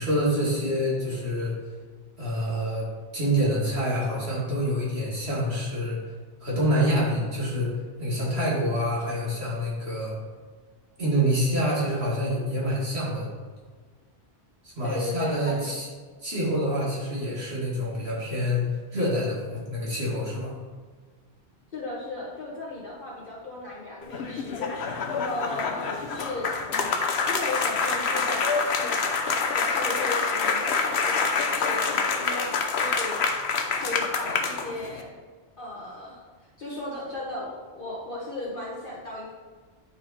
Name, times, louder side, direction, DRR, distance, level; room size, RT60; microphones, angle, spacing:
voice 1, 0.0-1.5 2.2-2.9 3.1-6.0 6.4-7.7 8.0-10.1 11.0-13.3 14.6-15.9 16.2-18.7 18.9-20.6, equal, 70° right, -6 dB, 2.5 m, -26 dB
voice 2, 14.8-15.7 21.7-26.5 27.3-33.2 33.8-35.1 35.6-36.2 36.6-39.3, left 2 dB, 50° left, -7 dB, 1.5 m, -36 dB
sound 1, 24.0-35.0, left 5 dB, 75° left, 1.1 m, -26 dB
10.0 x 4.9 x 4.2 m, 1.5 s
omnidirectional pair, 1.1 m